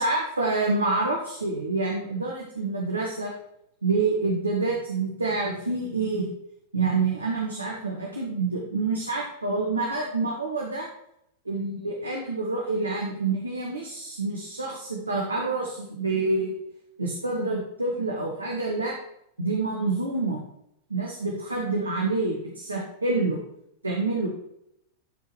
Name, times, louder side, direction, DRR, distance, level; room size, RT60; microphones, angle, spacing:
voice 1, 0.0-3.3 3.8-6.2 6.7-10.9 11.4-16.6 17.0-19.0 19.4-20.4 20.9-23.4 23.8-24.3, right 3 dB, 80° right, -1 dB, 1.2 m, -27 dB
12.5 x 4.7 x 3.1 m, 0.78 s
figure-of-eight pair, 90°, 0 cm